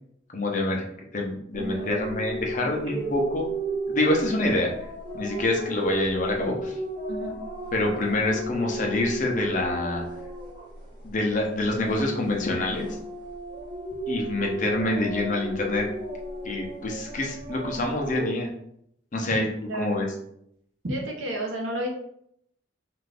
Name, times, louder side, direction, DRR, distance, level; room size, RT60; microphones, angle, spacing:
voice 1, 0.3-0.8 1.1-3.5 3.9-4.7 5.1-6.7 7.7-10.0 11.0-12.9 14.1-15.9 16.4-18.5 19.1-19.5 19.7-20.1, left 2 dB, 40° left, 1 dB, 0.6 m, -26 dB
sound 1, 1.5-11.3 11.7-18.3, right 1 dB, 25° right, 1.2 m, -34 dB
voice 2, 1.6-3.1 7.1-7.4 19.3-20.0 20.8-21.9, right 1 dB, 80° right, 0 dB, 0.8 m, -33 dB
2.5 x 2.5 x 3.2 m, 0.72 s
head